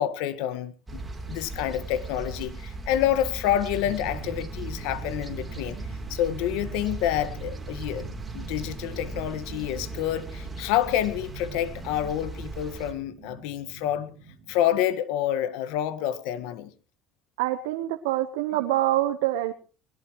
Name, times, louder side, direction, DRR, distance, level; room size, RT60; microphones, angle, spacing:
voice 1, 0.0-5.8 6.1-14.1 14.5-16.7, left 11 dB, 80° left, 1.6 m, -28 dB
sound 1, 0.9-12.9, right 3 dB, 15° right, 3.7 m, -38 dB
sound 2, 3.8-14.8, right 6 dB, 55° right, 3.8 m, -45 dB
voice 2, 17.4-19.5, right 14 dB, 90° right, 1.2 m, -25 dB
22.0 x 17.5 x 3.2 m
supercardioid pair, 110°, 0 cm